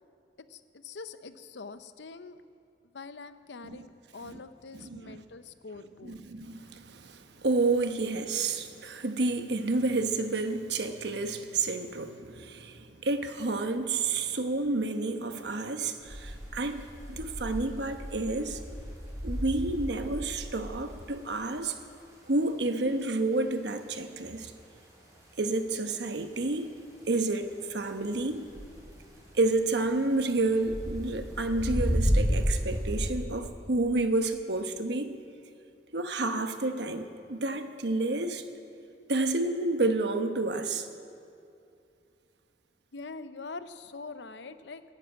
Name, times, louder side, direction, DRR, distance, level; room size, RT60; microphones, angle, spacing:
voice 1, 0.4-2.4 2.9-6.2 42.9-44.8, left 4 dB, 80° left, 12 dB, 0.7 m, -44 dB
voice 2, 4.7-5.2 6.0-18.6 19.2-21.8 22.3-24.5 25.4-26.7 27.1-28.5 29.3-35.2 35.9-38.4 39.1-40.9, right 2 dB, 75° right, 8 dB, 1.0 m, -30 dB
sound 1, 16.0-33.1, equal, 20° right, 3.3 m, -34 dB
14.0 x 10.5 x 9.0 m, 2.5 s
head